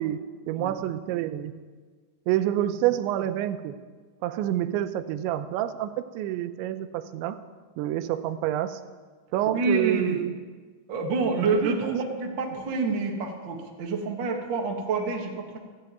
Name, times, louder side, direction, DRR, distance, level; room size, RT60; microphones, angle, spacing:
voice 1, 0.0-1.5 2.3-3.7 4.2-7.4 7.8-8.8 9.3-10.4 11.5-12.0, right 12 dB, 90° right, 11 dB, 3.0 m, -28 dB
voice 2, 9.5-10.2 10.9-15.6, right 3 dB, 65° right, 1 dB, 1.1 m, -28 dB
14.5 x 9.0 x 9.1 m, 1.5 s
omnidirectional pair, 5.2 m